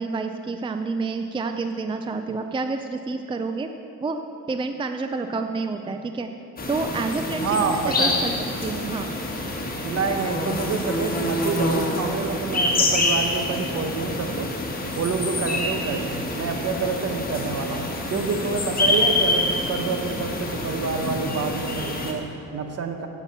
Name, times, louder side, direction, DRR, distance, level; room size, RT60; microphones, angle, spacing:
voice 1, 0.0-3.7 4.0-6.3 6.7-8.3 8.6-9.1, right 3 dB, 15° right, 7 dB, 0.4 m, -29 dB
sound 1, 6.6-22.1, left 2 dB, 30° left, 1.6 m, -26 dB
voice 2, 7.4-8.3 9.8-14.5 14.9-23.1, right 5 dB, 55° right, 5 dB, 1.0 m, -28 dB
8.2 x 7.3 x 6.9 m, 2.7 s
cardioid pair, 90°, 30 cm